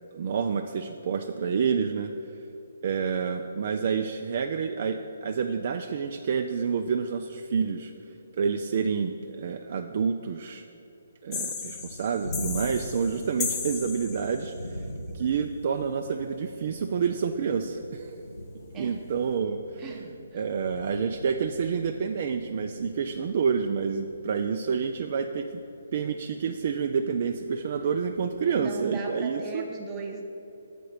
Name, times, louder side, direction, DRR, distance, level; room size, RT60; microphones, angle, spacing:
voice 1, 0.1-2.1 2.8-7.9 8.4-10.6 11.2-14.8 15.1-18.4 18.8-19.9 20.3-25.5 25.9-29.6, right 6 dB, 45° right, 5 dB, 0.3 m, -28 dB
sound 1, 11.3-14.6, left 6 dB, 20° left, 0.6 m, -35 dB
sound 2, 11.6-28.5, left 1 dB, 80° left, 0.6 m, -43 dB
voice 2, 28.5-30.2, right 4 dB, 15° right, 0 dB, 0.8 m, -37 dB
6.6 x 4.2 x 6.4 m, 2.9 s
figure-of-eight pair, 135°, 0 cm